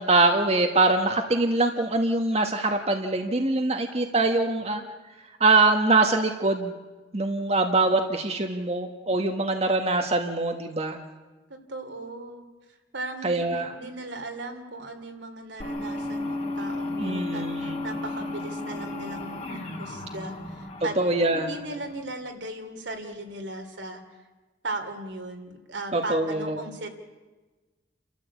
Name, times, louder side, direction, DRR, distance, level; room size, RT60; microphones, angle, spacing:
voice 1, 0.0-4.8 5.4-6.7 7.1-11.0 13.2-13.7 17.0-17.8 21.0-21.6 25.9-26.6, right 2 dB, 35° right, 4 dB, 1.4 m, -23 dB
voice 2, 4.4-4.9 11.5-20.9 21.3-24.2 24.6-26.9, right 2 dB, 75° right, 4 dB, 3.0 m, -38 dB
sound 1, 15.6-22.0, left 2 dB, 35° left, 2.6 m, -34 dB
30.0 x 13.5 x 8.3 m, 1.2 s
head